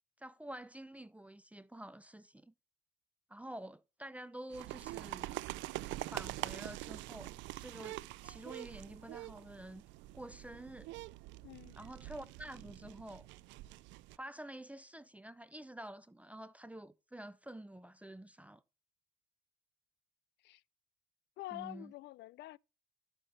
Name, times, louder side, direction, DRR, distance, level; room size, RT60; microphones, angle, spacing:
voice 1, 0.2-2.5 3.3-5.4 6.0-9.8 10.1-10.9 11.8-13.3 14.2-18.6 21.5-21.9, right 1 dB, 5° right, 0.5 m, -49 dB
sound 1, 4.5-14.2, right 18 dB, 80° right, 0.4 m, -45 dB
voice 2, 11.4-11.8 20.4-20.6 21.4-22.6, left 17 dB, 70° left, 0.4 m, -47 dB
12.0 x 5.9 x 3.3 m
cardioid pair, 85°, 19 cm